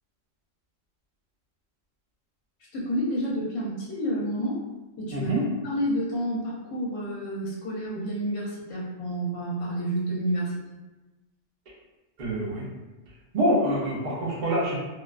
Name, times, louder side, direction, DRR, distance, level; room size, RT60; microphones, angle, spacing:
voice 1, 2.7-4.6 5.0-5.3 5.6-10.5, equal, 75° left, -5 dB, 1.0 m, -29 dB
voice 2, 5.1-5.5 12.2-12.6 13.3-14.7, equal, 45° right, -4 dB, 0.6 m, -25 dB
2.4 x 2.2 x 2.3 m, 1.1 s
omnidirectional pair, 1.3 m